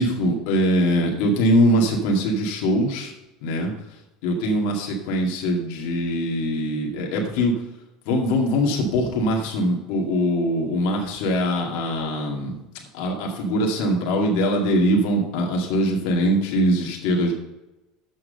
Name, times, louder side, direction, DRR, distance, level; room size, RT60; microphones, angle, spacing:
voice 1, 0.0-3.1 3.4-3.7 4.2-7.5 8.1-12.6 12.9-17.3, equal, 70° left, 0 dB, 2.0 m, -22 dB
7.7 x 6.0 x 6.6 m, 0.98 s
supercardioid pair, 125°, 0 cm